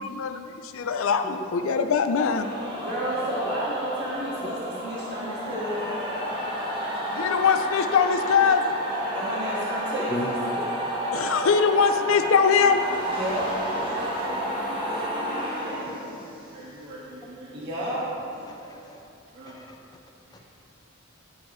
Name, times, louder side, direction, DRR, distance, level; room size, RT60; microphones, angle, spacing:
voice 1, 0.0-2.5 7.1-8.7 11.1-12.8, left 6 dB, 70° left, 8 dB, 0.4 m, -22 dB
sound 1, 2.3-16.5, equal, 25° right, 1.3 m, -31 dB
voice 2, 2.8-6.0 9.1-10.4 11.0-11.3 13.1-14.3 15.3-15.4 15.8-15.9 16.3-18.0 18.3-18.5 19.3-19.6, right 1 dB, 60° right, -7 dB, 1.6 m, -33 dB
voice 3, 18.5-19.0 19.5-19.8 20.3-20.4, left 1 dB, 20° left, 2 dB, 0.7 m, -35 dB
13.5 x 4.7 x 3.1 m, 2.8 s
head